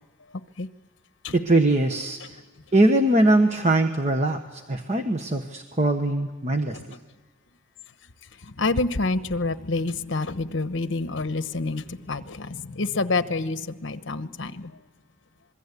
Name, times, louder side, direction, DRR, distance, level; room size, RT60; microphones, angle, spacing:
voice 1, 1.3-2.2 2.7-6.8, right 2 dB, 35° right, 6 dB, 1.2 m, -21 dB
voice 2, 8.4-14.8, left 3 dB, 65° left, 12 dB, 1.0 m, -28 dB
26.0 x 22.5 x 8.3 m, 1.3 s
head